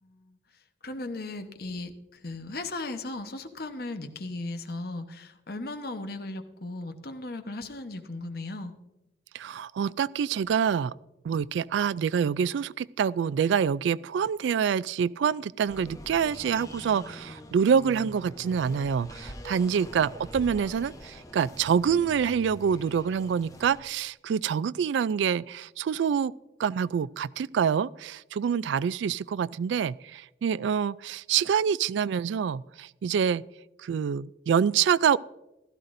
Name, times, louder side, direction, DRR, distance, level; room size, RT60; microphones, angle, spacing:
voice 1, 0.0-0.4 0.8-8.7, left 2 dB, 55° left, 1.0 m, -37 dB
voice 2, 9.3-10.9 11.2-26.3 26.6-33.4 33.8-35.2, right 7 dB, 75° right, 0.3 m, -26 dB
sound 1, 15.7-23.8, equal, 20° left, 0.9 m, -44 dB
16.0 x 13.5 x 2.6 m
head